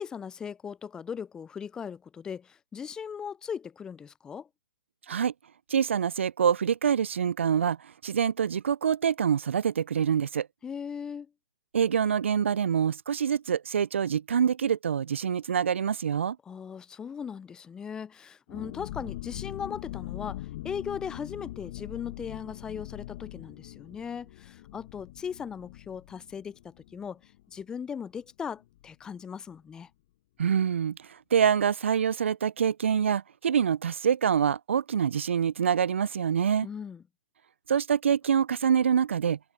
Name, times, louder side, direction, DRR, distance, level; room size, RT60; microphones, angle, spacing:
voice 1, 0.0-4.5 10.6-11.3 16.5-27.2 27.5-29.9 36.6-37.0, left 7 dB, 10° left, 0.3 m, -38 dB
voice 2, 5.7-10.5 11.7-16.4 30.4-31.0 31.3-36.7 37.7-39.4, right 7 dB, 75° right, 0.3 m, -25 dB
sound 1, 18.5-27.9 28.2-28.3 28.6-28.9, left 16 dB, 45° left, 1.2 m, -42 dB
hypercardioid pair, 135°, 7 cm